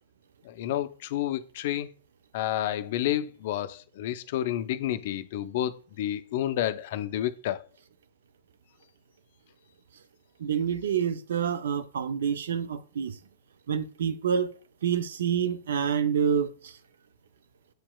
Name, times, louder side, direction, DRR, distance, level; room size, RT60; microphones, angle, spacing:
voice 1, 0.4-1.9 2.3-7.7, left 12 dB, 60° left, 0.3 m, -30 dB
voice 2, 10.4-13.2 13.7-14.5 14.8-16.8, right 7 dB, 75° right, 0.4 m, -27 dB
7.6 x 2.8 x 2.2 m
hypercardioid pair, 115°, 0 cm